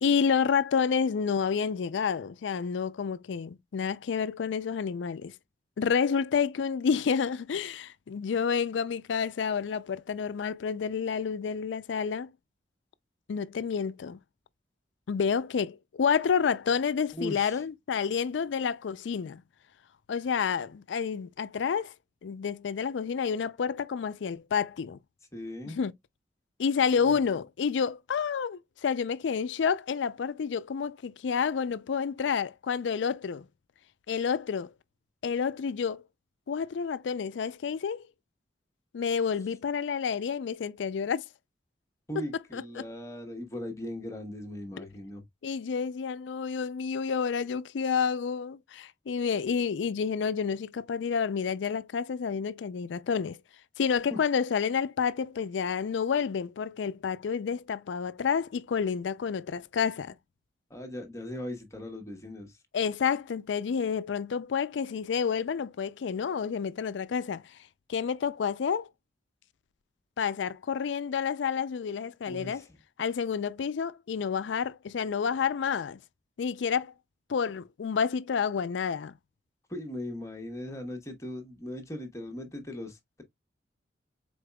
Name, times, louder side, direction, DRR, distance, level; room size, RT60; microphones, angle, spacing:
voice 1, 0.0-5.3 5.8-12.3 13.3-14.2 15.1-19.4 20.1-21.9 22.2-25.0 25.7-25.9 26.6-33.5 34.1-34.7 35.2-36.0 36.5-38.1 38.9-41.2 42.2-42.3 42.5-42.8 44.8-44.9 45.4-53.4 53.8-60.2 62.7-67.5 67.9-68.9 70.2-72.6 73.0-76.0 76.4-76.9 77.3-79.2, left 6 dB, 85° left, 0.4 m, -29 dB
voice 2, 17.1-17.6 25.3-25.8 27.0-27.2 42.1-45.2 54.1-54.2 60.7-62.5 72.3-72.8 79.7-83.2, left 1 dB, 15° left, 1.0 m, -39 dB
5.0 x 3.9 x 2.2 m
head